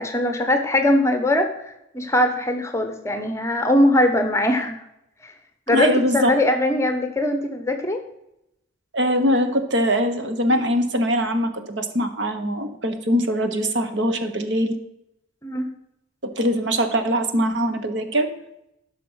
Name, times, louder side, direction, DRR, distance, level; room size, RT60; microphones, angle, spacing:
voice 1, 0.0-1.5 1.9-4.8 5.2-5.3 5.7-8.0 15.4-15.7, left 1 dB, 15° left, 6 dB, 1.0 m, -21 dB
voice 2, 5.7-6.3 8.9-14.7 16.4-18.3, equal, 55° right, 7 dB, 1.2 m, -22 dB
12.0 x 6.3 x 5.7 m, 0.83 s
head